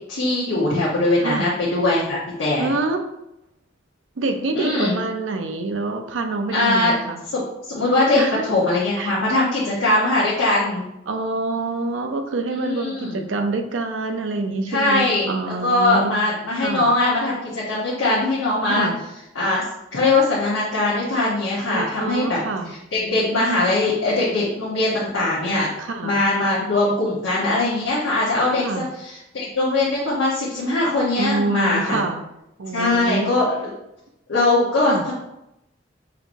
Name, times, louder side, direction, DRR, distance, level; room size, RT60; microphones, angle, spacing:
voice 1, 0.1-2.7 4.5-5.0 6.5-6.9 7.3-7.4 7.7-10.9 12.6-13.3 14.7-18.9 19.3-19.6 19.9-22.4 22.7-25.7 26.0-32.0 32.7-33.7 34.3-35.1, left 2 dB, 85° left, -7 dB, 1.0 m, -21 dB
voice 2, 2.6-3.0 4.2-7.2 8.1-8.5 9.0-9.2 11.1-16.2 16.6-16.9 18.7-19.0 21.7-22.7 25.8-26.2 28.6-28.9 31.2-32.2 32.6-33.3 34.9-35.0, right 3 dB, 80° right, 6 dB, 0.5 m, -26 dB
5.6 x 3.0 x 2.6 m, 0.86 s
head